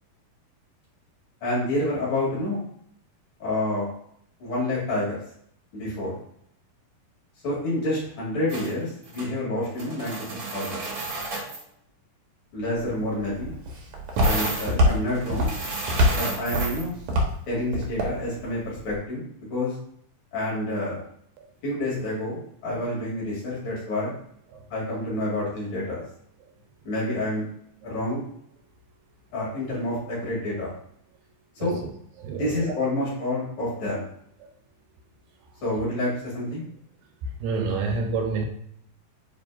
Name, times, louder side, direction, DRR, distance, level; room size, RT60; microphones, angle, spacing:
voice 1, 1.4-2.6 3.4-3.9 4.4-5.2 5.7-6.2 7.4-10.9 12.5-13.5 14.2-15.5 16.1-16.9 17.5-19.8 20.3-21.0 21.6-24.1 24.7-26.0 26.8-27.5 27.8-28.2 29.3-30.7 31.6-31.8 32.4-34.1 35.6-36.6, left 1 dB, 50° left, -7 dB, 3.9 m, -28 dB
sound 1, 8.5-8.7 9.0-9.3 9.6-11.6 14.2-16.9, right 3 dB, 45° right, 1.8 m, -32 dB
Walk footsteps, 12.8-18.9, left 1 dB, 60° right, 2.0 m, -26 dB
voice 2, 32.2-32.7 34.4-34.5 37.2-38.5, right 4 dB, 80° right, 4 dB, 2.6 m, -30 dB
9.0 x 4.3 x 2.5 m, 0.68 s
omnidirectional pair, 4.2 m